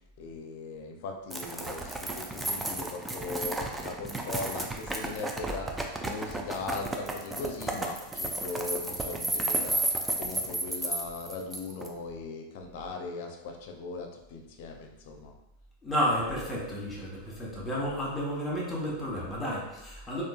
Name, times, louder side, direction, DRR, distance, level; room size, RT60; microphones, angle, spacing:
voice 1, 0.2-5.7 6.0-9.8 10.2-15.3, left 3 dB, 60° left, 3 dB, 0.5 m, -39 dB
sound 1, 1.3-11.9, right 2 dB, 10° right, 0.4 m, -33 dB
voice 2, 15.8-20.2, equal, 15° left, -4 dB, 1.1 m, -31 dB
3.7 x 2.4 x 2.3 m, 0.90 s
figure-of-eight pair, 90°, 0 cm